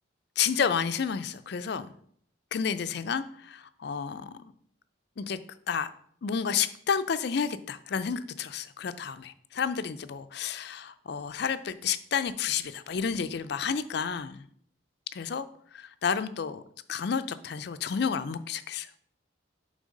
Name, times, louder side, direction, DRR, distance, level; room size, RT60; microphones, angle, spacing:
voice 1, 0.4-1.9 2.5-4.5 5.2-5.4 5.7-5.9 6.2-14.4 15.1-15.4 15.7-16.6 16.9-18.9, left 6 dB, 55° left, 12 dB, 0.4 m, -30 dB
7.5 x 3.3 x 5.2 m, 0.63 s
head